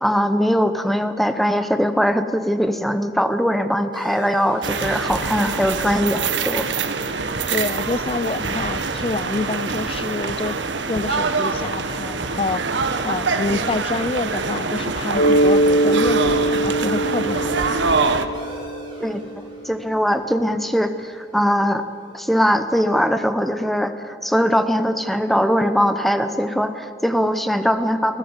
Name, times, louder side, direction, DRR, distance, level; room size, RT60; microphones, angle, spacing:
voice 1, 0.0-6.6 19.0-21.8 22.1-28.2, equal, ahead, 9 dB, 1.0 m, -21 dB
sound 1, 4.6-18.3, right 4 dB, 80° right, 1.3 m, -24 dB
voice 2, 7.5-10.6 10.9-12.7 13.0-17.8, left 3 dB, 30° left, 18 dB, 0.4 m, -27 dB
Mallet percussion, 15.1-19.6, right 1 dB, 85° left, 1.1 m, -21 dB
sound 2, 15.9-23.1, right 1 dB, 25° right, 5.6 m, -46 dB
25.5 x 16.5 x 8.1 m, 2.9 s
head